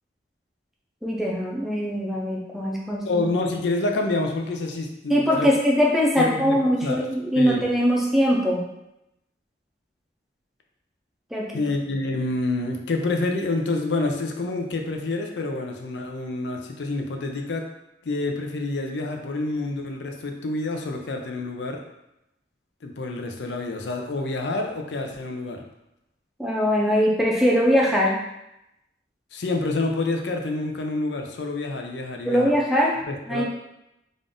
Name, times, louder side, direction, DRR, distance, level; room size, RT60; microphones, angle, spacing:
voice 1, 1.0-3.0 5.1-8.7 11.3-11.6 26.4-28.2 32.3-33.0 33.3-33.4, equal, ahead, -3 dB, 0.5 m, -21 dB
voice 2, 3.0-5.5 6.2-7.0 7.3-7.7 11.5-17.6 18.0-21.8 22.8-25.6 29.3-32.5 33.1-33.4, left 2 dB, 85° left, 3 dB, 0.5 m, -28 dB
3.6 x 2.5 x 3.7 m, 0.87 s
head